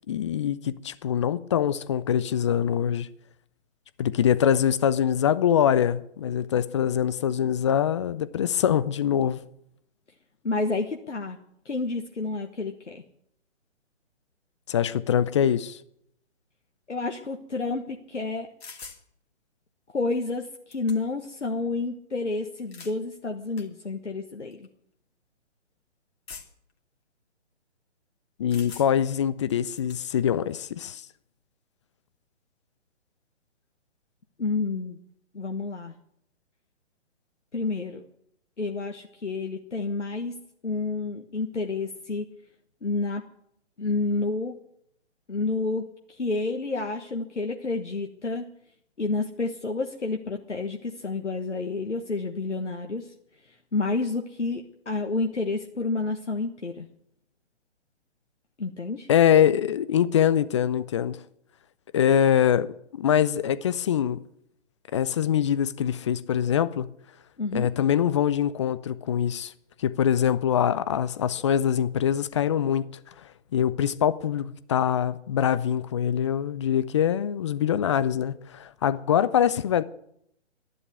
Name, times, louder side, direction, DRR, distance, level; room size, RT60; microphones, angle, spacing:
voice 1, 0.1-3.1 4.0-9.4 14.7-15.8 28.4-31.0 59.1-61.2 61.9-64.2 64.9-66.9 67.5-69.5 69.8-72.9 73.5-79.8, left 9 dB, 25° left, 0.6 m, -24 dB
voice 2, 10.4-11.4 11.6-13.0 16.9-18.5 19.9-24.7 34.4-35.0 35.3-35.9 37.5-38.0 38.6-42.3 42.8-43.3 43.8-44.6 45.3-48.5 49.0-53.1 53.5-56.9 58.6-59.1 67.4-67.7, left 3 dB, 80° left, 1.5 m, -30 dB
sound 1, 18.6-19.0 20.1-20.2 20.4-21.3 22.5-23.0 23.6-23.7 24.5-24.7 26.3-26.7 28.5-29.1 29.5-30.0, left 5 dB, 60° left, 2.6 m, -44 dB
13.0 x 11.0 x 9.6 m
figure-of-eight pair, 135°, 35 cm